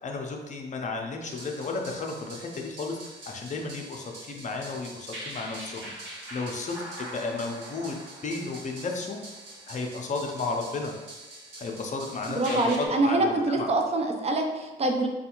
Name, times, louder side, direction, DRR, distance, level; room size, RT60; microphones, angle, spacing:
voice 1, 0.0-5.9 6.3-8.0 8.2-9.2 9.7-10.9 11.6-13.8, left 3 dB, 40° left, 2 dB, 0.6 m, -33 dB
sound 1, 1.3-12.9, right 1 dB, 80° right, 1.0 m, -43 dB
voice 2, 12.3-15.1, right 2 dB, 30° right, 3 dB, 0.5 m, -25 dB
3.3 x 2.3 x 2.9 m, 1.2 s
cardioid pair, 90°, 20 cm